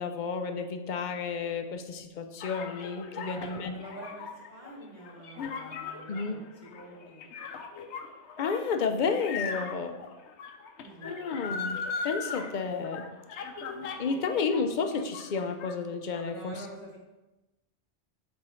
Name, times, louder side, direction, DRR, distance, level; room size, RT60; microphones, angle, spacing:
voice 1, 0.0-3.7 6.1-6.4 8.4-10.0 11.0-11.8 12.0-13.1 14.0-16.6, left 5 dB, 55° left, 7 dB, 0.6 m, -31 dB
sound 1, 2.4-14.6 14.9-15.7, left 5 dB, 75° left, 0.9 m, -39 dB
voice 2, 3.2-7.3 10.8-11.1 14.1-14.2 16.1-17.0, right 1 dB, 35° right, -5 dB, 1.1 m, -47 dB
7.7 x 3.5 x 4.4 m, 1.0 s
omnidirectional pair, 1.2 m